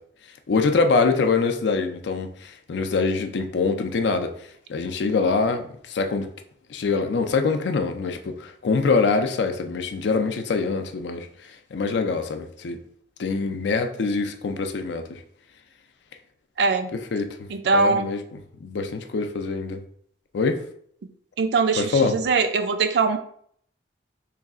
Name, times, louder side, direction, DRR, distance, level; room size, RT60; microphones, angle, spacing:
voice 1, 0.5-4.3 4.7-6.3 6.7-11.3 11.7-12.8 13.2-15.2 17.1-17.5 17.7-18.2 18.6-19.8 20.3-20.6 21.8-22.1, left 4 dB, 70° left, 7 dB, 0.4 m, -24 dB
voice 2, 16.6-16.9 17.5-18.1 21.4-23.2, right 4 dB, 65° right, 7 dB, 0.4 m, -22 dB
3.2 x 2.3 x 3.6 m, 0.63 s
head